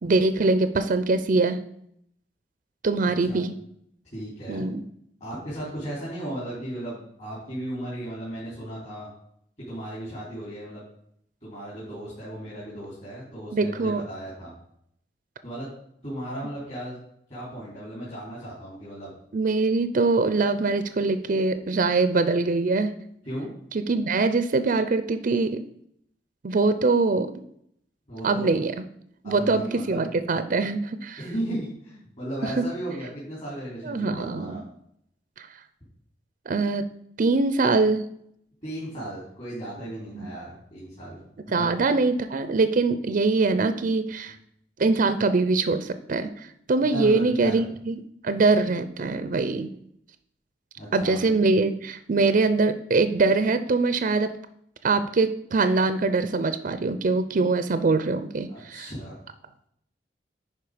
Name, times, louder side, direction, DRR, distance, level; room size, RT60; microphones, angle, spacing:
voice 1, 0.0-1.6 2.8-3.6 4.5-4.8 13.5-14.0 19.3-23.1 23.7-25.6 26.4-27.3 28.2-28.7 29.2-31.2 32.6-32.7 33.8-34.6 35.4-35.5 36.5-36.9 37.2-38.1 40.2-40.3 41.5-44.4 44.8-49.7 50.9-54.4 54.8-58.9, right 3 dB, 50° right, 11 dB, 0.5 m, -23 dB
voice 2, 4.1-4.7 5.2-9.1 9.7-10.8 11.4-14.5 15.4-15.7 16.0-17.0 17.3-19.1 23.2-23.5 28.1-28.5 29.2-30.0 31.2-34.6 38.6-41.2 41.5-41.9 46.9-47.6 50.8-51.3 58.5-59.1, right 1 dB, 40° left, -8 dB, 3.5 m, -35 dB
10.5 x 4.6 x 5.0 m, 0.71 s
head